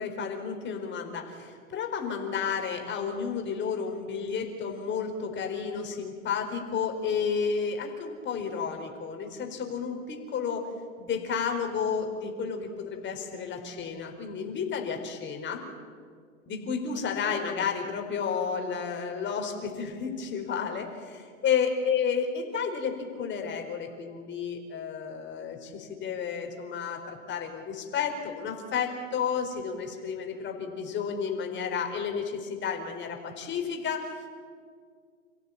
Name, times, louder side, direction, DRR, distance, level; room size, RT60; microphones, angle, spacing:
voice 1, 0.0-10.7 11.0-15.6 16.5-20.9 21.4-34.3, left 6 dB, 25° left, 4 dB, 4.4 m, -31 dB
29.0 x 16.0 x 8.9 m, 2.1 s
hypercardioid pair, 120°, 40 cm